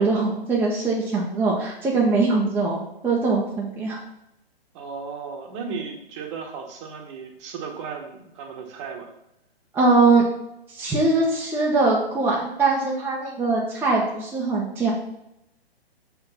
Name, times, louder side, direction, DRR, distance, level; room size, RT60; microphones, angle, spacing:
voice 1, 0.0-4.0 9.7-10.2 10.7-14.9, right 3 dB, 5° right, -4 dB, 0.9 m, -22 dB
voice 2, 4.7-9.1, right 5 dB, 30° right, 3 dB, 1.3 m, -35 dB
6.5 x 4.9 x 5.6 m, 0.84 s
figure-of-eight pair, 125°, 31 cm